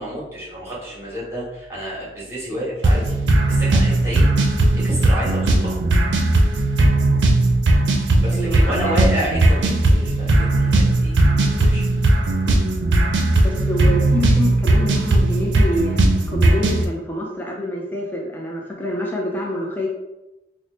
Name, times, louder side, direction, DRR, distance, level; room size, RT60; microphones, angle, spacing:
voice 1, 0.0-3.0 3.5-4.3 4.7-5.8 8.2-11.2 11.6-11.9, right 1 dB, 15° right, -7 dB, 1.3 m, -29 dB
sound 1, 2.8-16.8, right 2 dB, 75° right, 0.5 m, -17 dB
voice 2, 8.3-9.0 13.4-16.0 16.3-19.9, left 1 dB, 10° left, -2 dB, 0.4 m, -27 dB
3.3 x 2.0 x 3.9 m, 1.0 s
head